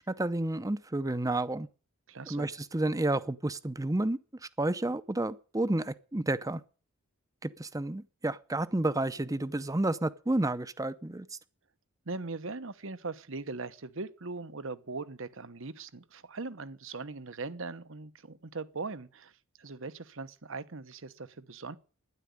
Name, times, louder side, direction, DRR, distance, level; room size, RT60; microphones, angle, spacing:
voice 1, 0.1-1.7 2.3-4.2 4.6-6.6 7.4-11.4, right 2 dB, 15° right, 0.7 m, -30 dB
voice 2, 2.1-2.5 12.1-19.3 19.6-21.8, right 3 dB, 65° right, 1.1 m, -40 dB
12.0 x 10.5 x 9.5 m
head